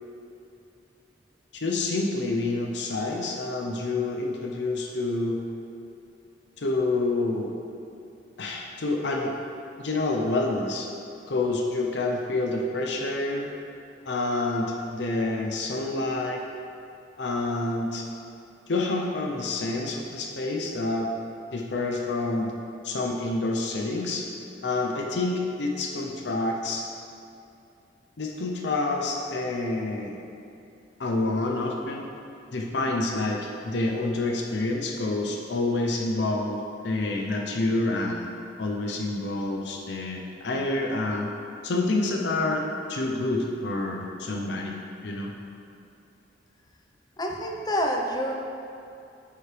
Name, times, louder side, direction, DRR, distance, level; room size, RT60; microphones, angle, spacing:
voice 1, 1.5-5.4 6.6-7.5 8.4-9.3 9.8-10.9 11.3-13.5 14.1-16.4 17.2-18.0 18.7-21.1 21.5-22.5 22.8-24.2 24.6-26.8 28.2-30.1 31.0-32.0 32.5-38.3 38.6-41.3 41.6-42.6 42.9-44.8 45.0-45.3, left 2 dB, 70° left, 0 dB, 0.6 m, -28 dB
voice 2, 47.2-48.3, equal, 20° left, 0 dB, 0.7 m, -27 dB
10.0 x 4.8 x 3.3 m, 2.6 s
head